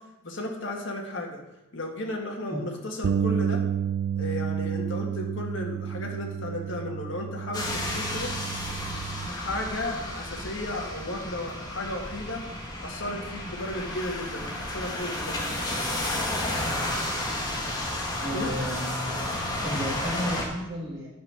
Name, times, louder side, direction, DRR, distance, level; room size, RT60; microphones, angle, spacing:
voice 1, 0.2-1.4 1.7-3.6 4.2-8.3 8.9-12.4 12.8-15.4 18.3-18.5, left 1 dB, 55° left, 1 dB, 1.7 m, -34 dB
Bass guitar, 3.0-9.3, right 7 dB, 60° right, 0.3 m, -30 dB
sound 1, 7.5-20.5, left 1 dB, 20° left, 1.5 m, -32 dB
sound 2, 13.6-18.9, left 5 dB, 80° left, 0.8 m, -43 dB
voice 2, 18.1-19.3 19.6-21.1, equal, 15° right, -10 dB, 2.1 m, -33 dB
10.0 x 5.4 x 6.0 m, 0.96 s
head